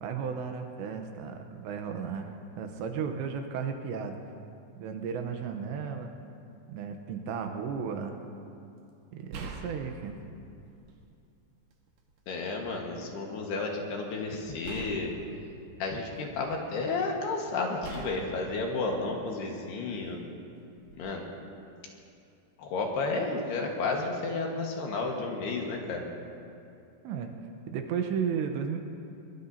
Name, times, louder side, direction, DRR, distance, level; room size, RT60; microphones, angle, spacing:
voice 1, 0.0-4.1 4.7-6.1 6.7-8.2 9.1-10.2 14.6-14.7 27.0-27.3 27.7-28.8, right 6 dB, 80° right, 4 dB, 2.9 m, -34 dB
sound 1, 7.7-7.8 9.3-11.1 11.6-12.6 14.6-16.6 17.8-19.7 20.8-21.0, right 4 dB, 65° right, 2.5 m, -45 dB
voice 2, 12.3-15.1 15.8-20.2 21.0-21.2 22.6-26.0, left 3 dB, 65° left, 0 dB, 3.3 m, -32 dB
22.0 x 22.0 x 2.8 m, 2.6 s
omnidirectional pair, 5.4 m